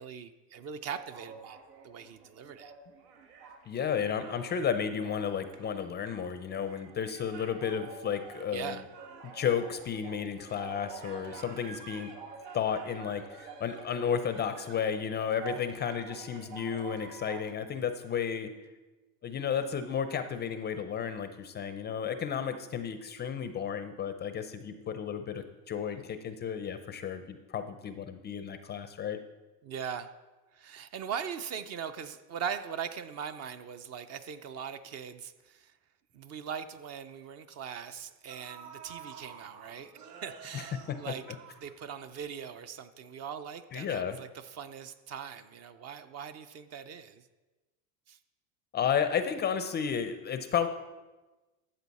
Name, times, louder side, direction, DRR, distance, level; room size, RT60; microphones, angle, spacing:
voice 1, 0.0-1.6 1.8-2.7 8.5-8.8 29.6-30.1 30.5-35.7 36.1-39.9 40.2-41.2 41.6-47.3 48.1-48.2, right 7 dB, 35° right, 11 dB, 0.5 m, -40 dB
sound 1, 0.8-17.6, right 5 dB, 90° right, 1.6 m, -48 dB
voice 2, 3.7-8.8 9.3-12.1 12.5-18.5 19.2-29.2 40.5-41.1 43.7-44.2 48.7-50.7, left 7 dB, 25° left, 9 dB, 0.4 m, -33 dB
sound 2, 36.1-36.2 36.6-36.8 37.8-37.9 38.3-42.2 42.5-42.6, right 7 dB, 55° right, 2.3 m, -49 dB
13.0 x 7.6 x 4.1 m, 1.2 s
supercardioid pair, 125°, 46 cm